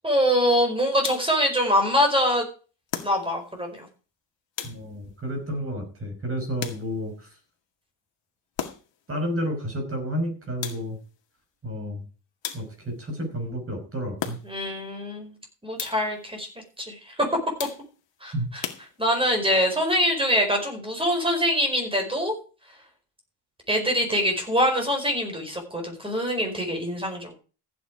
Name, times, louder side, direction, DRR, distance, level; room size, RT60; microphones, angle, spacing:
voice 1, 0.0-2.5 3.0-3.9 14.4-15.3 15.6-16.5 16.8-17.1 18.2-18.6 19.0-22.3 23.7-27.3, equal, 10° right, 3 dB, 4.8 m, -24 dB
sound 1, 1.0-1.5 2.9-3.6 4.6-5.2 6.6-7.2 8.6-9.1 10.6-11.1 12.4-13.0 14.2-14.8 15.8-16.2 17.6-18.1 18.6-19.4, left 9 dB, 60° left, 2.2 m, -36 dB
voice 2, 4.6-7.1 9.1-11.0 11.6-12.0 12.5-14.4 18.3-18.5, equal, 25° right, 4 dB, 5.4 m, -31 dB
15.0 x 9.0 x 4.9 m, 0.36 s
cardioid pair, 150°, 50 cm